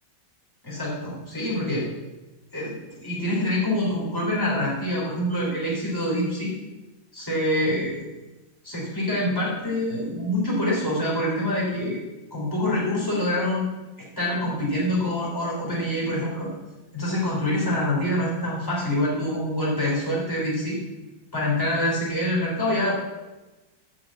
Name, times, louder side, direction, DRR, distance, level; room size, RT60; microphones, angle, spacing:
voice 1, 0.6-1.9 2.5-6.5 7.1-8.0 8.6-12.0 12.3-13.6 14.2-16.5 16.9-20.8 21.3-22.9, left 1 dB, 10° left, -5 dB, 3.7 m, -25 dB
13.5 x 5.1 x 7.6 m, 1.1 s
omnidirectional pair, 2.0 m